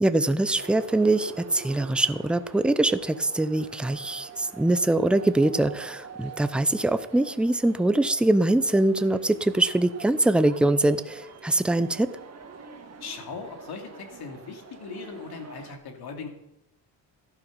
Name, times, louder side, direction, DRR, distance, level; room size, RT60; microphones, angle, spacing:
voice 1, 0.0-12.1, right 2 dB, ahead, 12 dB, 0.5 m, -23 dB
sound 1, 0.5-15.7, right 5 dB, 35° right, 1.7 m, -45 dB
voice 2, 13.0-16.3, left 5 dB, 60° left, 3 dB, 2.8 m, -39 dB
14.0 x 11.5 x 5.4 m, 0.87 s
cardioid pair, 125°, 42 cm